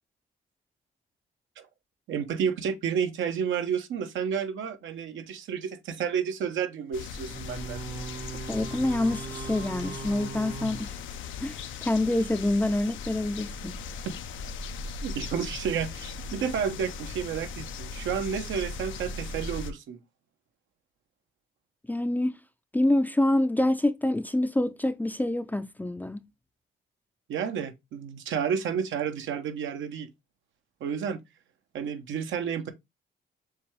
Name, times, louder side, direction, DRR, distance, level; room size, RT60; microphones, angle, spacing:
voice 1, 2.1-7.8 14.0-14.1 15.0-20.0 27.3-30.1 30.8-31.2 31.7-32.7, right 7 dB, 75° right, 0.9 m, -31 dB
sound 1, 6.9-19.7, left 4 dB, 75° left, 0.6 m, -38 dB
sound 2, 7.3-11.8, right 4 dB, 50° right, 0.8 m, -40 dB
voice 2, 8.5-11.0 11.4-13.7 21.9-22.4 22.7-26.2, left 1 dB, 10° left, 0.4 m, -26 dB
6.8 x 2.3 x 3.2 m
cardioid pair, 90°, 20 cm